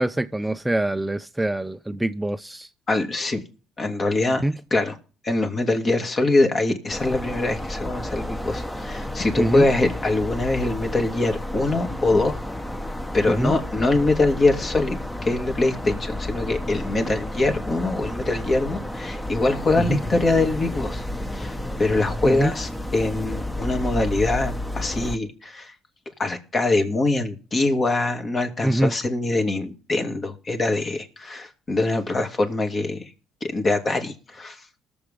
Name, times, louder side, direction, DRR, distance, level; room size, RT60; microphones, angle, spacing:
voice 1, 0.0-2.7 4.4-4.5 9.4-9.7 13.4-13.5 19.9-20.0 22.2-22.5 28.6-28.9, right 1 dB, 10° right, 0.5 m, -24 dB
voice 2, 2.9-3.4 3.8-5.0 5.2-12.4 13.1-21.0 21.3-25.7 26.2-33.0 33.4-34.6, left 2 dB, 35° left, 2.5 m, -23 dB
sound 1, 6.9-25.2, left 1 dB, 10° left, 1.1 m, -31 dB
20.0 x 7.0 x 3.7 m
supercardioid pair, 75°, 0 cm